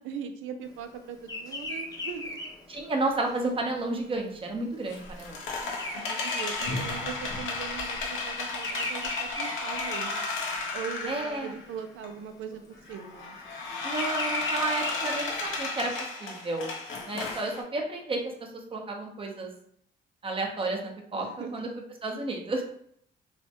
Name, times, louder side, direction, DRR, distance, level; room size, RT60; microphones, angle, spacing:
voice 1, 0.0-2.4 5.9-10.3 10.7-13.4 21.1-21.7, right 7 dB, 85° right, 7 dB, 0.4 m, -40 dB
Bird vocalization bird call bird song, 1.2-7.7 7.9-10.8 11.3-11.6 12.6-15.6, left 2 dB, 20° left, 0.7 m, -37 dB
voice 2, 2.7-5.4 11.1-11.5 13.8-15.9 16.2-16.7 17.1-18.2 18.7-19.5 20.2-21.3 21.5-21.7 22.0-22.6, right 2 dB, 25° right, 1 dB, 0.7 m, -31 dB
sound 1, 4.9-11.6 12.0-12.1 12.9-17.6, left 3 dB, 80° left, 0.8 m, -34 dB
3.1 x 2.1 x 2.8 m, 0.66 s
cardioid pair, 90°, 20 cm